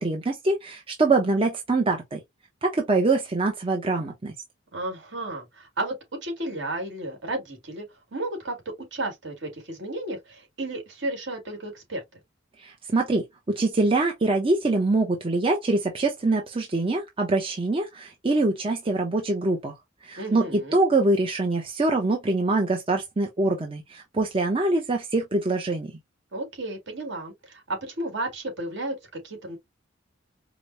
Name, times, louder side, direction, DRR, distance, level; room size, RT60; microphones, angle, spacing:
voice 1, 0.0-2.2 2.6-4.3 12.6-13.2 13.6-19.7 20.0-25.9, right 2 dB, 30° right, 0.7 m, -24 dB
voice 2, 4.7-8.6 8.9-12.2 20.2-20.8 26.3-29.6, right 1 dB, 65° right, 1.9 m, -33 dB
5.0 x 2.1 x 2.6 m
head